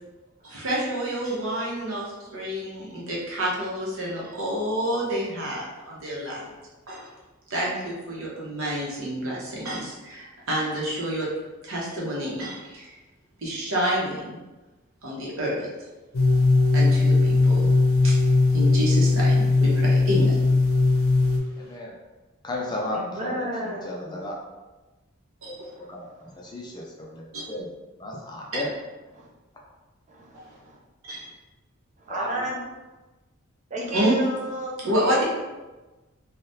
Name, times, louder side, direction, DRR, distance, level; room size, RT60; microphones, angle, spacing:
voice 1, 0.4-6.4 6.9-7.1 7.5-11.3 11.6-12.9 13.4-14.4 15.0-15.7 16.7-17.7 18.0-18.1 18.5-20.4 25.4-25.7 27.3-27.4 31.1-31.3 33.9-34.2 34.8-35.2, equal, 80° right, -5 dB, 0.9 m, -28 dB
sound 1, 16.1-21.4, left 3 dB, 90° left, 0.6 m, -19 dB
voice 2, 21.6-21.9 22.4-24.4 25.5-25.6 25.9-27.7 28.0-28.7 32.1-32.5, left 1 dB, 20° left, -2 dB, 0.4 m, -34 dB
voice 3, 22.9-24.2 25.7-26.1 26.4-26.5 27.4-27.5 29.1-29.3 30.1-30.8 32.0-32.7 33.7-34.8, right 1 dB, 35° right, -3 dB, 0.6 m, -33 dB
3.3 x 2.3 x 2.7 m, 1.2 s
head